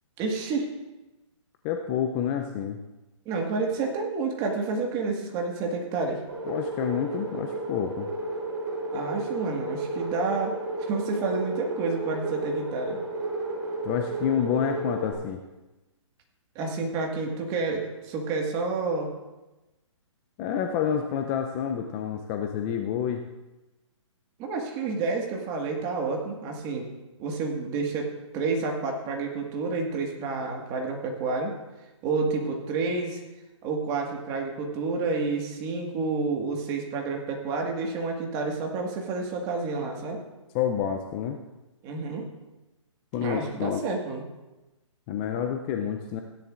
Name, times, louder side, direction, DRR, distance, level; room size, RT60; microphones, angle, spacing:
voice 1, 0.2-0.7 3.2-6.2 8.9-13.0 16.5-19.1 24.4-26.9 27.2-31.5 32.0-33.2 33.6-40.2 41.8-42.2 43.2-44.2, right 4 dB, 25° right, 1 dB, 1.6 m, -29 dB
voice 2, 1.6-2.8 6.5-8.1 13.8-15.4 20.4-23.2 40.5-41.4 43.1-43.8 45.1-46.2, left 8 dB, 20° left, 5 dB, 0.5 m, -28 dB
sound 1, 6.3-15.1, right 2 dB, 45° right, 3.2 m, -33 dB
16.0 x 10.5 x 2.5 m, 1.0 s
hypercardioid pair, 145°, 16 cm